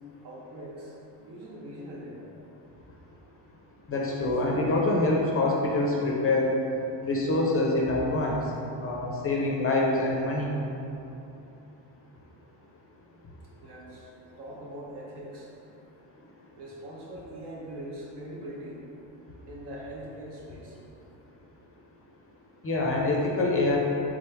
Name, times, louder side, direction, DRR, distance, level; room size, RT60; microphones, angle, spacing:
voice 1, 0.2-2.3 13.6-14.1 14.4-15.5 16.6-18.8 19.5-20.8, right 1 dB, 60° right, -4 dB, 1.0 m, -42 dB
voice 2, 3.9-6.5 7.0-8.4 8.8-10.5 22.6-23.8, left 2 dB, 30° left, -2 dB, 0.5 m, -25 dB
3.7 x 3.2 x 3.3 m, 2.8 s
cardioid pair, 110°, 45 cm